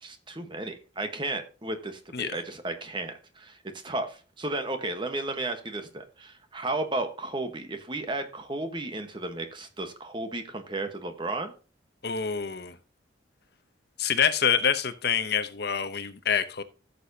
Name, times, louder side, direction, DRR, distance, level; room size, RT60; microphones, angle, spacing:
voice 1, 0.0-3.6 3.8-11.5, right 2 dB, 25° right, 1.2 m, -33 dB
voice 2, 12.0-12.8 14.0-16.6, left 7 dB, 55° left, 0.8 m, -26 dB
14.5 x 6.9 x 2.8 m
head